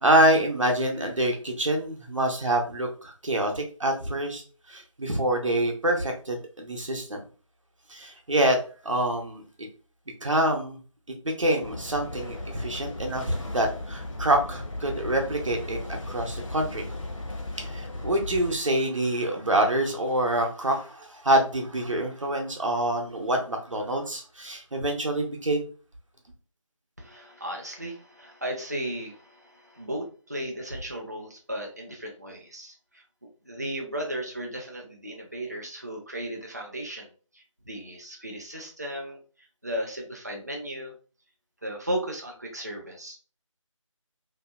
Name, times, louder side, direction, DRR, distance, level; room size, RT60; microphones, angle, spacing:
voice 1, 0.0-4.4 4.7-7.2 7.9-8.6 8.8-9.7 10.2-10.8 11.2-16.8 17.6-25.6, right 1 dB, 65° right, 2 dB, 0.7 m, -26 dB
sound 1, 11.6-18.5, left 1 dB, 70° left, 0.7 m, -36 dB
voice 2, 27.0-33.0 33.5-37.1 37.3-39.2 39.6-40.9 41.6-43.2, right 1 dB, 30° right, 1 dB, 0.3 m, -35 dB
2.7 x 2.1 x 2.3 m, 0.38 s
figure-of-eight pair, 165°, 17 cm